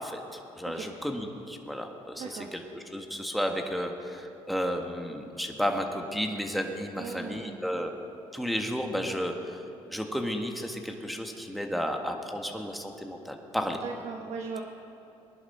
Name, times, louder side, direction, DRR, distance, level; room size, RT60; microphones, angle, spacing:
voice 1, 0.0-7.9 8.3-9.6 9.9-13.8, equal, ahead, 3 dB, 1.5 m, -33 dB
voice 2, 2.2-2.5 7.0-7.6 13.8-14.6, right 5 dB, 60° right, 3 dB, 1.0 m, -38 dB
19.5 x 11.0 x 4.4 m, 3.0 s
supercardioid pair, 80°, 12 cm